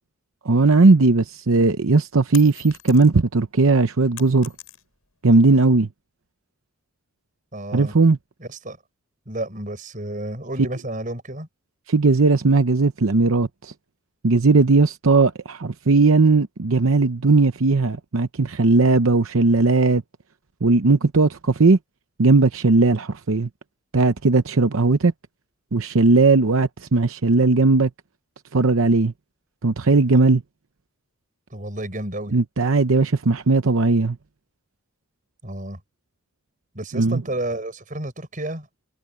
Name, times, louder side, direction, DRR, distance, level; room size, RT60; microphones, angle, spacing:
voice 1, 0.4-4.5 5.2-5.9 7.7-8.2 11.9-13.7 14.2-20.0 20.6-21.8 22.2-23.5 23.9-25.1 25.7-27.9 28.5-29.1 29.6-30.4 32.3-34.2 36.9-37.2, right 3 dB, 75° right, 0.8 m, -17 dB
sound 1, 1.5-3.4 3.7-5.2, left 13 dB, 85° left, 7.9 m, -42 dB
voice 2, 7.5-8.0 8.4-8.8 9.3-11.5 31.5-32.3 35.4-35.8 36.7-38.7, right 1 dB, 40° right, 5.6 m, -31 dB
head